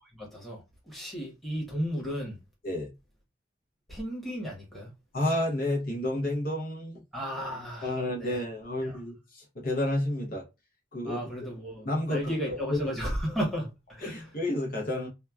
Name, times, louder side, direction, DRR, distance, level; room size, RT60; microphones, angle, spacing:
voice 1, 0.1-2.4 3.9-4.9 7.1-8.4 8.8-9.0 11.1-14.4, equal, ahead, 1.0 m, -34 dB
voice 2, 5.1-7.0 7.8-10.5 10.9-11.2 11.8-12.8 14.0-15.1, left 1 dB, 50° left, 0.8 m, -30 dB
2.9 x 2.2 x 2.3 m
head